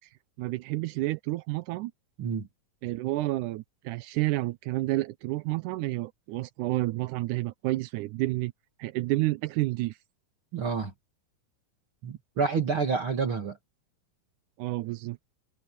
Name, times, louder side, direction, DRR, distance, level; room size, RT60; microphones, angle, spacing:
voice 1, 0.4-1.9 2.8-8.5 8.8-10.0 14.6-15.2, right 18 dB, 85° right, 1.8 m, -30 dB
voice 2, 10.5-10.9 12.0-13.6, right 5 dB, 45° right, 2.4 m, -28 dB
omnidirectional pair, 4.1 m